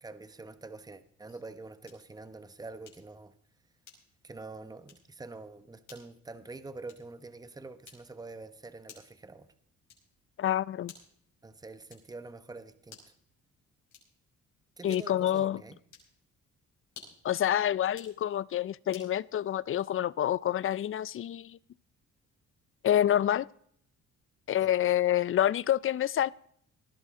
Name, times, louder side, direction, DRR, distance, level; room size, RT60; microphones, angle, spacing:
voice 1, 0.0-3.3 4.2-9.5 11.4-13.1 14.8-15.8 24.6-24.8, right 3 dB, 15° right, 12 dB, 1.0 m, -46 dB
sound 1, 1.8-2.2 2.8-3.2 3.8-4.3 4.8-5.1 5.8-6.1 6.8-7.2 7.8-8.3 8.9-9.2 9.9-10.2 10.8-11.2 11.9-12.2 12.8-13.2 13.9-14.3 14.9-15.3 15.9-16.2 16.8-17.3 17.8-18.2 18.9-19.2, left 6 dB, 70° left, 5.5 m, -54 dB
voice 2, 10.4-10.9 14.8-15.6 17.2-21.6 22.8-23.5 24.5-26.3, left 11 dB, 45° left, 22 dB, 0.4 m, -27 dB
19.0 x 12.5 x 3.7 m, 0.66 s
cardioid pair, 90°, 30 cm